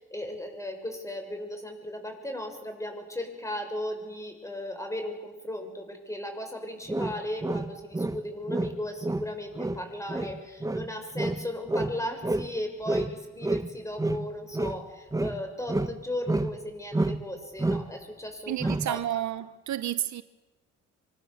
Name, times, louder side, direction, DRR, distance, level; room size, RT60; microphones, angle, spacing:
voice 1, 0.0-19.0, left 1 dB, 10° left, 7.2 m, -36 dB
sound 1, 6.9-8.2 8.5-12.5 12.9-14.8 15.1-16.6 16.9-17.3 17.6-17.9 18.6-19.0, right 2 dB, 10° right, 1.2 m, -29 dB
voice 2, 18.5-20.2, right 12 dB, 70° right, 1.0 m, -31 dB
25.5 x 25.5 x 7.4 m
cardioid pair, 90°, 30 cm